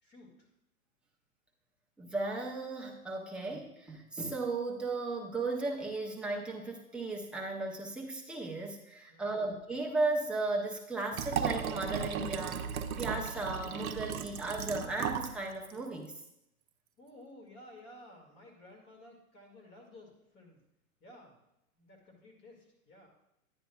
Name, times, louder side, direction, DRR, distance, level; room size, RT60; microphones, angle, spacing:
voice 1, 0.0-0.5 9.1-9.5 17.0-20.6 21.0-21.3 21.8-23.1, left 1 dB, 25° left, 1 dB, 2.1 m, -54 dB
voice 2, 2.0-16.2, right 2 dB, ahead, -2 dB, 0.5 m, -36 dB
Liquid, 11.1-15.4 15.7-15.8, right 8 dB, 70° right, 0.8 m, -35 dB
10.5 x 8.8 x 2.3 m, 0.85 s
hypercardioid pair, 135°, 43 cm